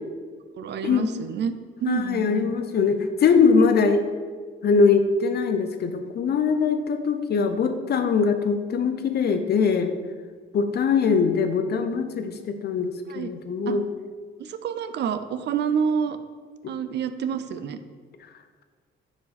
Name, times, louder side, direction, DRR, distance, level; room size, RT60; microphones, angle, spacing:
voice 1, 0.6-1.5 1.8-2.6 13.1-13.3 13.7-13.8 14.4-16.2 16.7-17.8, right 7 dB, 60° right, 11 dB, 0.4 m, -28 dB
voice 2, 1.9-4.0 4.6-9.9 10.5-13.9, left 5 dB, 55° left, 9 dB, 0.6 m, -22 dB
5.1 x 4.9 x 4.0 m, 1.5 s
cardioid pair, 90°, 20 cm